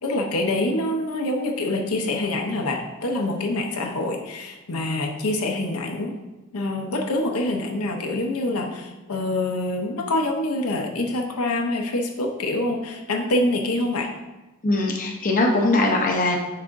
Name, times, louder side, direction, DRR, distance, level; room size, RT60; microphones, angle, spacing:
voice 1, 0.0-6.1 6.5-14.1, left 2 dB, 70° left, 2 dB, 0.7 m, -25 dB
voice 2, 14.6-16.4, left 2 dB, 40° left, 0 dB, 0.7 m, -21 dB
8.3 x 4.7 x 2.6 m, 1.1 s
head